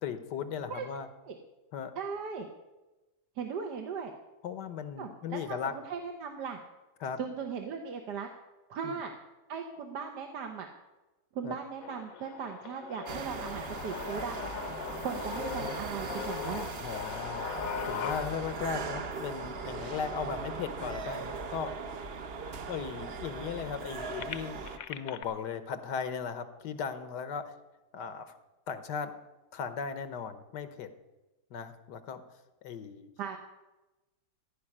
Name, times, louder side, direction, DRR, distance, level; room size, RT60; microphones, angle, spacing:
voice 1, 0.0-1.1 1.7-1.9 4.4-5.7 7.0-7.2 8.8-9.0 11.4-11.6 16.8-17.5 17.8-21.7 22.7-27.5 27.9-28.4 28.7-29.1 29.5-30.9 31.5-32.2 32.6-33.1, left 6 dB, 85° left, 11 dB, 1.6 m, -37 dB
voice 2, 2.0-2.5 3.4-4.1 5.0-6.6 7.2-8.3 8.7-9.1 9.5-10.7 11.3-14.4 15.0-16.7 33.2-33.4, right 6 dB, 80° right, 4 dB, 1.6 m, -38 dB
sound 1, 11.8-21.8 22.4-22.5 22.8-25.2, left 8 dB, 65° left, 1.1 m, -41 dB
sound 2, 13.1-24.8, right 5 dB, 50° right, 0.8 m, -39 dB
15.5 x 5.5 x 10.0 m, 1.1 s
omnidirectional pair, 1.8 m